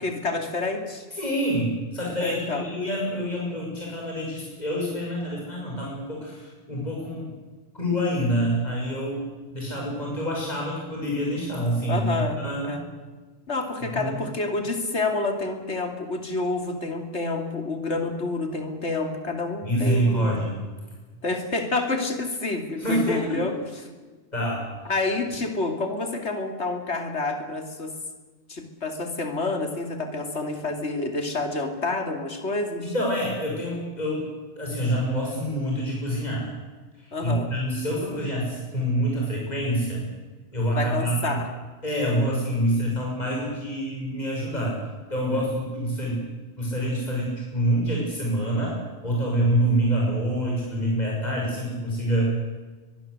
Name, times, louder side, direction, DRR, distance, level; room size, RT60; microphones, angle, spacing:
voice 1, 0.0-1.0 2.2-2.6 11.9-12.4 12.6-12.8 13.5-20.3 21.2-23.5 24.9-27.9 28.5-32.9 37.1-37.5 40.8-41.5 45.3-45.5, left 3 dB, 75° left, 6 dB, 3.3 m, -28 dB
voice 2, 1.1-7.3 7.7-12.7 13.9-14.2 19.6-20.6 22.8-23.4 24.3-24.9 32.9-34.3 34.6-36.5 37.0-40.0 40.5-41.4 41.8-44.7 45.1-46.2 46.6-48.8 49.0-52.3, equal, 35° left, -3 dB, 6.4 m, -26 dB
23.5 x 22.5 x 8.0 m, 1.4 s
omnidirectional pair, 1.2 m